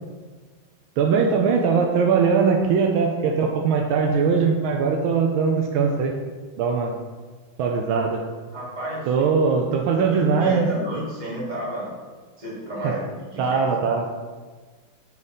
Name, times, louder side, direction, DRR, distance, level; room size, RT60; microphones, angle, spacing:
voice 1, 1.0-6.1 6.6-6.9 7.6-8.2 9.1-10.7 12.8-12.9 13.4-14.1, right 5 dB, 80° right, 2 dB, 1.4 m, -21 dB
voice 2, 8.5-9.3 10.1-11.9 12.4-13.8, right 1 dB, 20° right, -7 dB, 2.0 m, -31 dB
9.0 x 3.6 x 4.1 m, 1.4 s
omnidirectional pair, 2.3 m